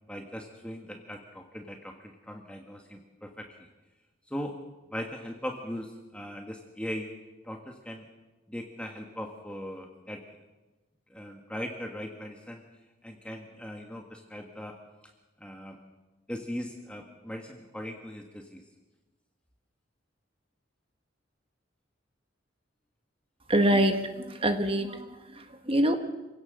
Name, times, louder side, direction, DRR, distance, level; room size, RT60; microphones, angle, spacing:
voice 1, 0.1-3.5 4.3-4.6 4.9-7.1 7.4-8.1 8.5-10.2 11.1-12.6 13.0-14.8 15.4-15.8 16.3-18.6, equal, 5° left, 2 dB, 1.5 m, -39 dB
voice 2, 23.5-26.0, right 1 dB, 30° right, 7 dB, 1.5 m, -25 dB
26.5 x 17.5 x 6.5 m, 1.1 s
head